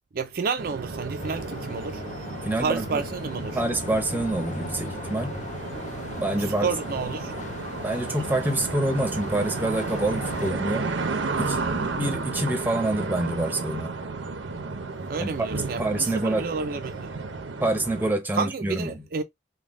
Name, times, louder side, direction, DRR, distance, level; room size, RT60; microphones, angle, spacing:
voice 1, 0.1-2.0 2.6-3.6 6.4-7.3 15.1-17.1 18.4-19.2, right 5 dB, 50° right, 0.4 m, -30 dB
sound 1, 0.6-18.1, right 3 dB, 85° right, 0.7 m, -33 dB
sound 2, 1.2-10.5, left 3 dB, 40° left, 0.4 m, -39 dB
voice 2, 2.4-3.0 3.5-5.4 6.2-6.7 7.7-10.9 11.4-13.9 15.2-15.5 15.8-16.4 17.6-19.0, right 1 dB, 10° right, 0.7 m, -27 dB
3.7 x 2.2 x 3.5 m
head